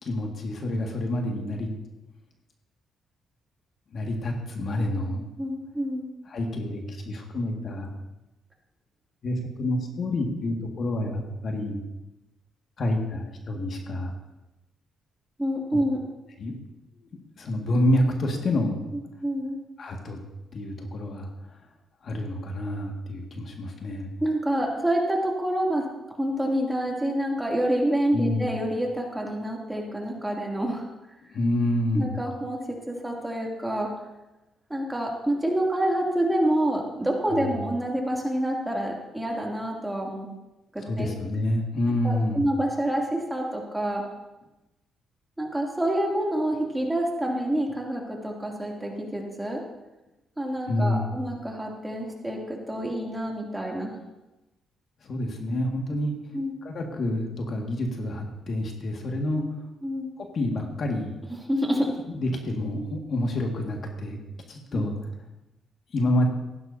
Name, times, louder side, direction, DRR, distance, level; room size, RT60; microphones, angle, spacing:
voice 1, 0.0-1.7 3.9-5.2 6.3-8.0 9.2-11.8 12.8-14.1 15.7-15.8 16.4-16.5 17.0-17.1 17.4-18.8 19.8-20.2 20.5-21.3 22.0-24.1 28.1-28.5 31.3-32.1 37.3-37.5 40.8-42.4 50.7-51.2 55.0-56.1 56.6-59.4 60.3-61.1 62.1-64.2 64.5-64.9 65.9-66.3, left 1 dB, 55° left, 1 dB, 1.9 m, -28 dB
voice 2, 5.4-6.1 15.4-16.0 19.2-19.6 24.2-25.9 26.2-30.9 31.9-32.6 32.9-33.9 34.7-40.3 40.7-41.1 42.0-44.0 45.4-49.6 50.4-53.9 56.3-56.5 59.4-59.5 59.8-60.1 61.3-61.9 64.7-64.8, right 1 dB, 10° right, -1 dB, 2.8 m, -27 dB
15.5 x 12.0 x 2.8 m, 1.0 s
cardioid pair, 90°, 0 cm